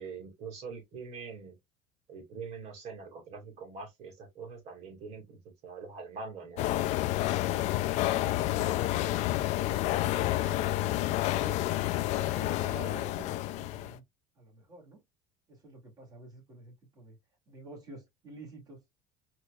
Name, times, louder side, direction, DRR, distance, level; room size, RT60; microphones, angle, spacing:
voice 1, 0.0-1.5 2.1-6.7, right 5 dB, 50° right, 2.1 m, -43 dB
sound 1, 6.6-14.0, left 15 dB, 50° left, 0.4 m, -29 dB
voice 2, 9.2-11.7 12.1-14.0 14.4-15.0 15.5-17.2 17.5-18.8, right 3 dB, 25° right, 2.4 m, -50 dB
4.4 x 2.9 x 2.3 m
cardioid pair, 140°, 15 cm